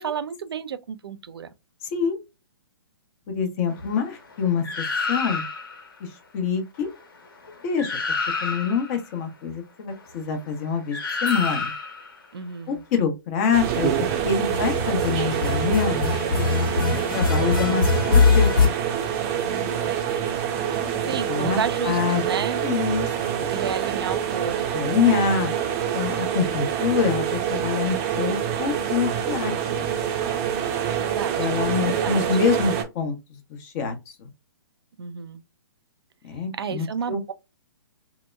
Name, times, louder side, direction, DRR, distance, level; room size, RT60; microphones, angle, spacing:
voice 1, 0.0-1.5 12.3-12.8 19.4-19.9 21.0-22.6 23.5-25.4 30.8-31.5 31.8-32.3 35.0-35.4 36.6-37.3, right 7 dB, 75° right, 0.4 m, -32 dB
voice 2, 3.3-4.6 5.1-5.5 6.0-6.9 7.6-7.9 8.4-11.7 12.7-16.1 17.1-18.7 21.0-23.1 23.4-23.5 24.7-25.5 25.9-29.5 29.8-29.9 31.4-34.3 36.2-37.2, left 6 dB, 35° left, 0.8 m, -26 dB
sound 1, 4.6-5.8 7.4-7.5 7.8-8.9 10.9-12.1 14.4-18.7, left 5 dB, 60° left, 1.1 m, -23 dB
sound 2, 11.2-12.4, right 2 dB, 5° left, 1.0 m, -43 dB
sound 3, 13.5-32.8, right 9 dB, 30° right, 0.6 m, -26 dB
2.8 x 2.1 x 2.2 m
hypercardioid pair, 130°, 13 cm